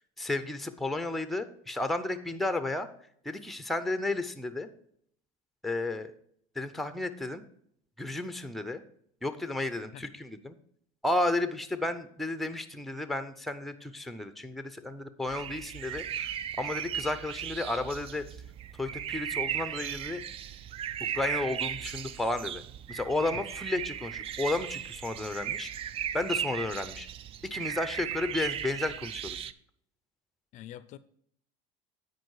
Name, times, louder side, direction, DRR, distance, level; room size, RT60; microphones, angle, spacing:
voice 1, 0.2-2.9 3.2-4.7 5.6-6.1 6.5-7.4 8.0-8.8 9.2-10.6 11.0-16.3 16.6-18.2 18.8-20.2 21.1-22.6 22.9-27.1 27.4-29.5, left 2 dB, ahead, 10 dB, 0.6 m, -33 dB
sound 1, 15.3-29.5, right 9 dB, 40° right, 0.4 m, -37 dB
voice 2, 30.5-31.0, left 12 dB, 55° left, 15 dB, 0.4 m, -45 dB
9.3 x 4.7 x 4.7 m, 0.66 s
supercardioid pair, 120°, 15 cm